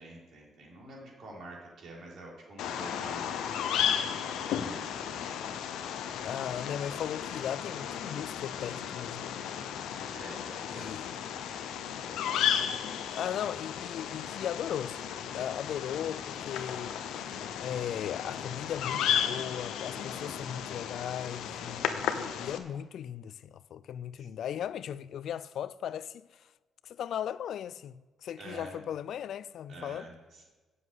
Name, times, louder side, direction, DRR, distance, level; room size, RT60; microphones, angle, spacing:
voice 1, 0.0-5.5 10.1-11.1 11.7-12.3 19.9-20.4 24.2-24.3 28.4-28.8 29.7-30.4, right 2 dB, 65° right, 3.5 m, -48 dB
Bird vocalization bird call bird song, 2.6-22.6, left 9 dB, 85° left, 0.8 m, -34 dB
voice 2, 6.2-9.3 10.7-11.1 13.0-15.0 15.3-26.4 26.8-27.9 28.2-30.1, left 9 dB, 70° left, 0.3 m, -37 dB
7.8 x 7.4 x 7.9 m
cardioid pair, 90°, 0 cm